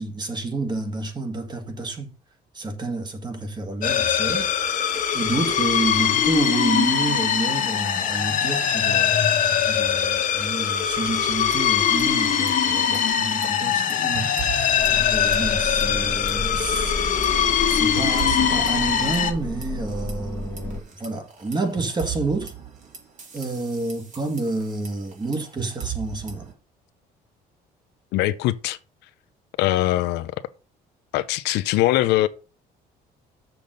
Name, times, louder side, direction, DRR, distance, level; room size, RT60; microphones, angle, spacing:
voice 1, 0.0-2.1 2.5-4.5 5.1-9.2 9.7-14.8 15.1-16.9 17.7-22.5 23.3-26.5, right 2 dB, 25° right, 1.8 m, -29 dB
sound 1, 3.8-19.3, left 8 dB, 50° left, 1.4 m, -22 dB
sound 2, 11.3-12.0 12.3-12.5 12.9-15.6 15.8-16.3 16.8-20.1 20.6-26.5, right 9 dB, 45° right, 2.4 m, -37 dB
sound 3, 14.8-20.8, left 1 dB, 10° left, 1.2 m, -32 dB
voice 2, 28.1-28.8 29.6-30.3 31.1-32.3, left 16 dB, 90° left, 0.6 m, -21 dB
7.0 x 6.0 x 5.2 m
cardioid pair, 110°, 17 cm